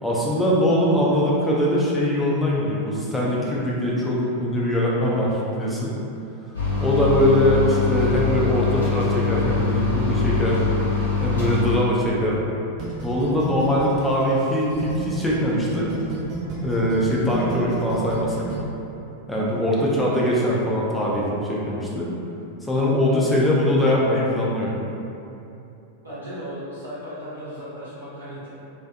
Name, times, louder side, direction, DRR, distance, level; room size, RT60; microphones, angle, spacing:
voice 1, 0.0-6.0 6.8-10.6 11.2-12.4 13.0-15.9 16.6-18.5 19.3-22.1 22.6-24.7, left 1 dB, 5° left, -6 dB, 0.5 m, -22 dB
sound 1, 6.5-11.8, left 4 dB, 80° left, 0.7 m, -23 dB
sound 2, 12.8-15.4 15.7-18.6, right 4 dB, 40° right, 0.6 m, -32 dB
voice 2, 26.0-28.5, equal, 80° right, -12 dB, 0.8 m, -36 dB
2.5 x 2.4 x 2.2 m, 2.8 s
figure-of-eight pair, 90°, 0 cm